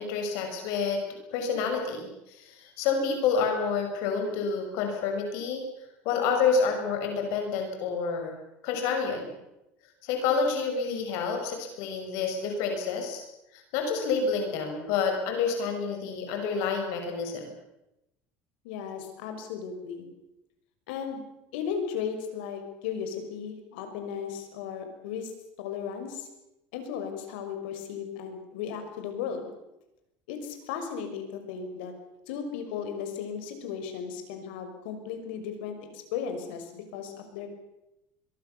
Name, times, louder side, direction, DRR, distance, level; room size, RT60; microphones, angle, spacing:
voice 1, 0.0-5.6 6.0-8.4 8.6-9.3 10.0-13.2 13.5-17.5, left 5 dB, 70° left, 4 dB, 6.3 m, -28 dB
voice 2, 18.6-20.1 20.9-21.2 21.5-25.3 25.6-26.3 26.7-29.5 30.3-31.9 32.3-37.5, left 7 dB, 90° left, 6 dB, 5.9 m, -36 dB
23.5 x 23.0 x 7.0 m, 0.91 s
cardioid pair, 140°, 5 cm